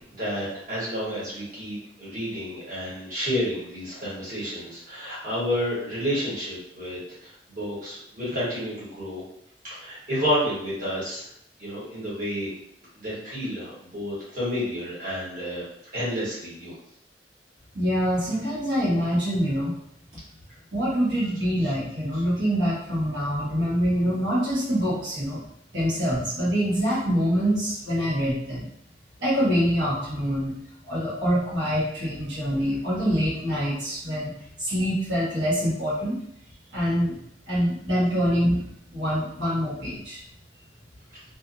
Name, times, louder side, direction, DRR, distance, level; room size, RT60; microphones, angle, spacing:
voice 1, 0.1-9.2 9.7-11.3 11.6-12.5 12.9-15.6 15.9-16.7, equal, 50° right, -8 dB, 1.3 m, -30 dB
voice 2, 17.7-19.7 20.7-25.4 25.7-28.7 29.2-30.5 30.9-34.3 34.6-36.2 36.7-37.2 37.5-38.6 38.9-40.2, equal, 85° right, -8 dB, 1.4 m, -25 dB
2.6 x 2.5 x 2.5 m, 0.71 s
head